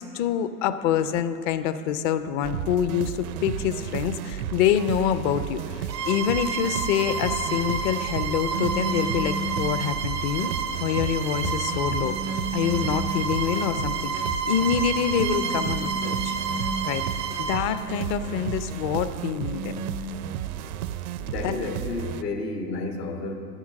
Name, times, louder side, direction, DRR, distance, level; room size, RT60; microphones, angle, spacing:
voice 1, 0.0-10.5 10.8-12.1 12.5-16.4 16.9-17.0 17.4-19.7 21.4-21.5, left 9 dB, 35° left, 12 dB, 0.5 m, -26 dB
sound 1, 2.4-22.2, right 11 dB, 65° right, 0.6 m, -33 dB
Bowed string instrument, 5.9-17.7, right 4 dB, 90° right, 1.0 m, -30 dB
sound 2, 8.5-9.8 12.0-13.4 15.5-17.1 19.5-20.2, right 3 dB, 20° right, 0.4 m, -33 dB
voice 2, 21.2-23.3, left 3 dB, 80° left, 4 dB, 1.5 m, -31 dB
14.0 x 5.7 x 6.3 m, 2.8 s
hypercardioid pair, 100°, 47 cm